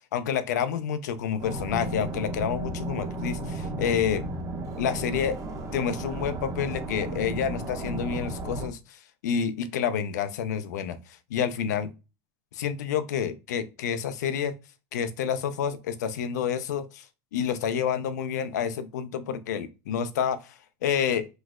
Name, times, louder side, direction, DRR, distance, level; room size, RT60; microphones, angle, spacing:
voice 1, 0.0-4.2 4.8-5.4 5.7-11.9 12.5-14.5 14.9-17.1 17.3-21.3, left 8 dB, 85° left, 0.4 m, -29 dB
sound 1, 1.4-8.7, right 2 dB, 40° right, 1.0 m, -34 dB
3.0 x 2.0 x 3.5 m
hypercardioid pair, 95°, 9 cm